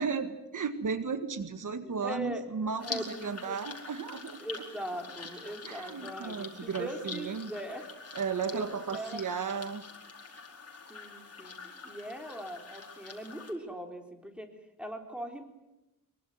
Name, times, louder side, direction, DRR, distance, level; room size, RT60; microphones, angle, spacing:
voice 1, 0.0-4.4 5.5-7.5 8.1-9.9, right 5 dB, 65° right, 10 dB, 1.9 m, -34 dB
voice 2, 1.8-2.4 2.8-3.6 4.4-7.9 8.4-8.6 8.9-9.2 10.9-14.5 14.8-15.4, equal, 5° right, 4 dB, 4.0 m, -40 dB
sound 1, 2.8-13.5, left 4 dB, 45° left, 4.8 m, -45 dB
24.0 x 23.0 x 9.5 m, 0.93 s
wide cardioid pair, 120°, 33 cm